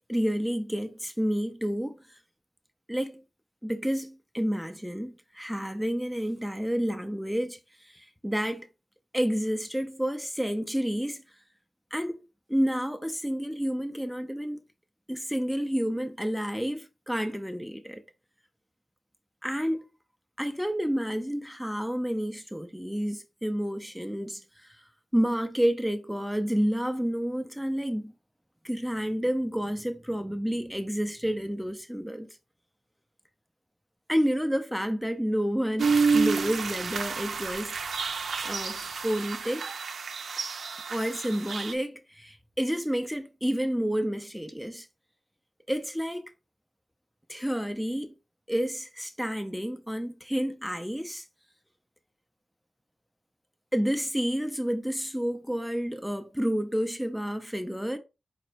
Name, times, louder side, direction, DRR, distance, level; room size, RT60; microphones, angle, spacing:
voice 1, 0.1-2.2 2.9-3.2 3.6-8.7 9.1-11.2 11.9-12.2 12.5-14.6 15.1-18.0 19.4-19.8 20.4-24.8 25.1-28.1 28.6-32.3 34.1-37.8 38.4-39.7 40.9-44.9 45.7-46.3 47.3-48.1 48.5-51.3 53.7-58.0, equal, ahead, 0.5 m, -30 dB
sound 1, 35.8-41.7, right 5 dB, 85° right, 0.5 m, -29 dB
5.0 x 2.2 x 4.4 m
wide cardioid pair, 85°, 0 cm